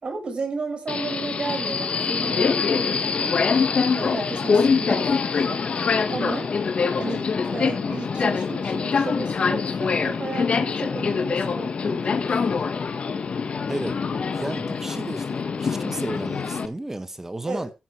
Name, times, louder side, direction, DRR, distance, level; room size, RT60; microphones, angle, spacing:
voice 1, 0.0-3.3 3.9-6.5 7.0-12.7 17.5-17.7, right 3 dB, 45° right, 6.3 m, -34 dB
Subway metro underground, 0.9-16.7, left 5 dB, 55° left, 1.7 m, -24 dB
voice 2, 13.7-14.0 14.3-17.7, right 1 dB, 20° right, 1.6 m, -33 dB
15.0 x 7.3 x 4.6 m
cardioid pair, 65°, 2 cm